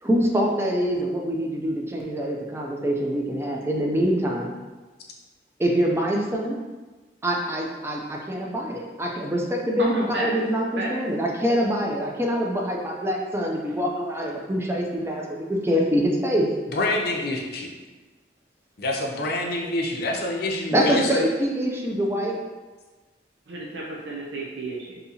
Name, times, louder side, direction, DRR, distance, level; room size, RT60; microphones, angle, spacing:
voice 1, 0.0-4.5 5.6-6.6 7.2-16.5 20.7-22.4, equal, 15° right, 0 dB, 0.4 m, -25 dB
voice 2, 9.8-10.3 10.8-10.9 23.5-25.0, right 2 dB, 75° right, -2 dB, 0.5 m, -31 dB
voice 3, 16.7-17.7 18.8-21.2, left 1 dB, 60° left, 0 dB, 0.6 m, -26 dB
3.9 x 2.7 x 2.7 m, 1.2 s
head